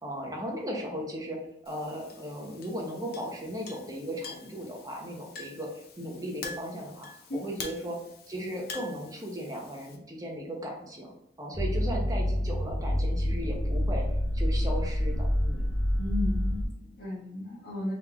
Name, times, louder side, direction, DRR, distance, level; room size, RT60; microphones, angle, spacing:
voice 1, 0.0-8.0 8.3-11.1 11.4-14.0 14.3-15.7, equal, 20° right, 0 dB, 0.9 m, -36 dB
Chink clink, 1.7-10.0, left 5 dB, 60° left, 0.7 m, -46 dB
sound 1, 11.5-16.6, equal, 5° left, 1.0 m, -27 dB
voice 2, 16.0-17.9, left 2 dB, 85° left, -7 dB, 1.2 m, -34 dB
4.1 x 3.6 x 2.9 m, 0.80 s
head